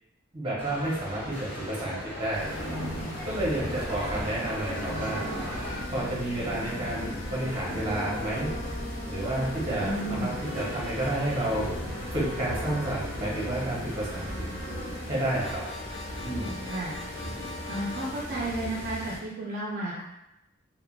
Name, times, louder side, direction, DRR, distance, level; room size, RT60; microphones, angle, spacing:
voice 1, 0.3-2.5 3.2-5.2 5.9-8.5 9.1-11.7 12.1-14.3 15.1-15.6 16.2-16.5, right 1 dB, 25° right, -6 dB, 0.8 m, -30 dB
sound 1, 0.6-5.8, equal, 10° left, 1.3 m, -39 dB
sound 2, 2.3-19.2, equal, 60° left, 1.0 m, -37 dB
sound 3, 3.3-18.1, left 1 dB, 35° left, 0.4 m, -40 dB
voice 2, 9.8-10.3 16.7-16.9 17.7-20.0, right 1 dB, 50° right, -5 dB, 0.4 m, -32 dB
3.3 x 2.1 x 2.3 m, 0.89 s
head